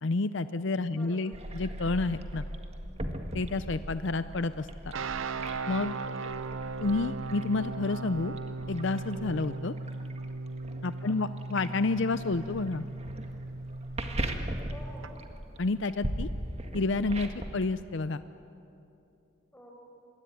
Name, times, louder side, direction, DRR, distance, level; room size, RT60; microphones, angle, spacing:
voice 1, 0.0-2.5 3.3-4.7 5.7-6.0 6.8-8.3 8.7-9.7 10.8-12.9 15.6-16.3 16.7-18.2, left 3 dB, 65° left, 12 dB, 0.6 m, -30 dB
voice 2, 0.9-1.4 11.0-11.4 14.7-15.4 19.5-19.7, equal, 10° left, 0 dB, 5.6 m, -50 dB
sound 1, 1.3-17.7, right 1 dB, 30° right, 1.7 m, -39 dB
sound 2, 4.9-15.1, right 3 dB, 75° right, 0.7 m, -37 dB
27.0 x 21.5 x 9.5 m, 2.8 s
head